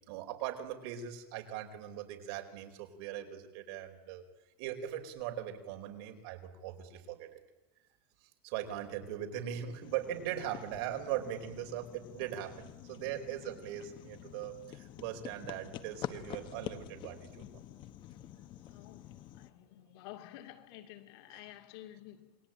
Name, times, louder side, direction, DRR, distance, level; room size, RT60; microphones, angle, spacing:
voice 1, 0.1-4.2 4.6-7.4 8.4-17.6 21.3-21.4, right 11 dB, 65° right, 4.6 m, -40 dB
sound 1, 9.8-19.5, left 12 dB, 35° left, 1.1 m, -47 dB
voice 2, 18.7-22.4, left 13 dB, 70° left, 2.7 m, -51 dB
28.0 x 21.5 x 9.0 m
cardioid pair, 165°, 13 cm